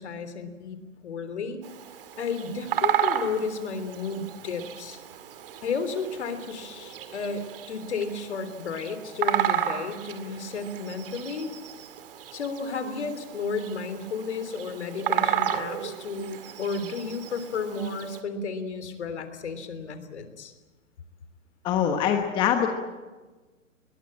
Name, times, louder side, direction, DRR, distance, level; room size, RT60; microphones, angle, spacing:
voice 1, 0.0-1.6 2.2-5.0 5.6-11.5 12.3-20.5, left 4 dB, 55° left, 10 dB, 3.5 m, -33 dB
Bird vocalization bird call bird song, 1.6-18.2, right 10 dB, 45° right, 2.1 m, -33 dB
voice 2, 21.6-22.7, left 9 dB, 10° left, 4 dB, 1.2 m, -23 dB
23.0 x 21.0 x 8.8 m, 1.2 s
hypercardioid pair, 155°, 40 cm